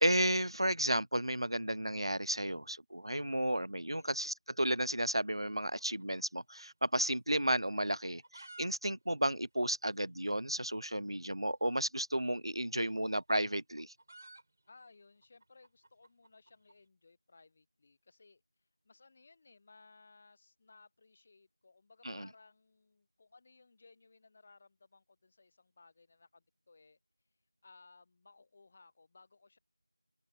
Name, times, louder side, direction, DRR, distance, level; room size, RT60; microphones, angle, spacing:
voice 1, 0.0-13.9 22.1-22.3, right 1 dB, 85° right, 0.4 m, -33 dB
voice 2, 4.0-4.3 12.5-13.1 14.7-27.0 27.6-29.6, left 3 dB, 5° left, 0.3 m, -62 dB
sound 1, 5.8-7.1 7.3-7.4 8.0-8.7 8.9-9.0 9.3-9.4 10.0-10.1 11.3-11.4 12.6-16.8, right 2 dB, 30° right, 4.8 m, -56 dB
figure-of-eight pair, 175°, 3 cm